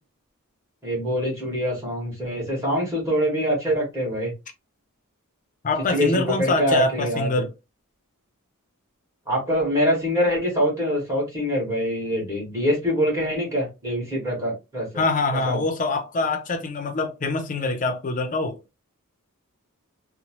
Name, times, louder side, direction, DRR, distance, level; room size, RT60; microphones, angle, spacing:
voice 1, 0.8-4.3 5.9-7.3 9.3-14.9 15.4-15.6, equal, 15° right, 1.4 m, -24 dB
voice 2, 5.6-7.5 15.0-18.6, left 2 dB, 35° left, 0.5 m, -24 dB
3.0 x 2.1 x 2.9 m
head